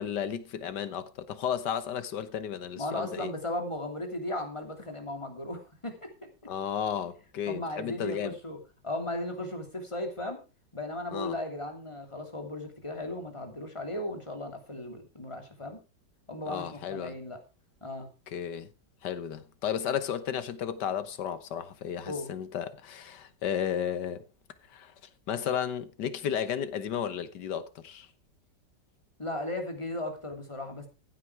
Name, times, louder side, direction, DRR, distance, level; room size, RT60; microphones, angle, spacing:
voice 1, 0.0-3.3 6.5-8.4 11.1-11.4 16.5-17.1 18.3-18.7 19.0-24.2 24.7-24.9 25.3-28.1, left 9 dB, 75° left, 1.7 m, -33 dB
voice 2, 2.7-6.1 7.5-8.6 8.8-10.4 10.7-15.8 16.3-17.4 17.8-18.1 22.1-22.3 29.2-30.9, left 1 dB, 15° left, 2.9 m, -36 dB
15.5 x 8.8 x 4.7 m
omnidirectional pair, 1.9 m